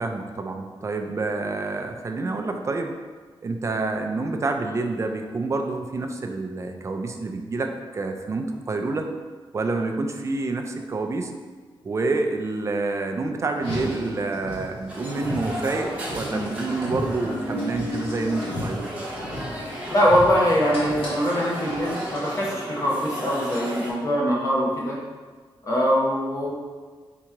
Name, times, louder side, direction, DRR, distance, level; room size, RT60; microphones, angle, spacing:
voice 1, 0.0-2.9 3.4-9.1 9.5-11.3 11.8-18.9, right 3 dB, 30° right, 4 dB, 0.3 m, -28 dB
Car, 13.5-22.5, left 1 dB, 80° left, 1.4 m, -34 dB
sound 1, 14.9-23.9, equal, 15° right, 0.8 m, -34 dB
voice 2, 19.9-25.0 25.6-26.5, equal, 35° left, -5 dB, 0.9 m, -22 dB
3.6 x 2.9 x 4.5 m, 1.5 s
wide cardioid pair, 175°, 10 cm